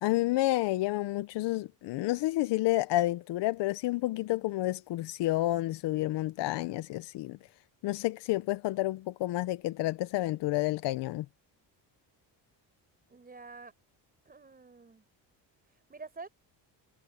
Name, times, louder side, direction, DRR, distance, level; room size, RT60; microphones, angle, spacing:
voice 1, 0.0-7.4 7.8-11.3, left 17 dB, 75° left, 0.7 m, -30 dB
voice 2, 13.1-13.7 14.3-15.1 15.7-16.3, right 4 dB, 20° right, 5.4 m, -48 dB
cardioid pair, 150°, 42 cm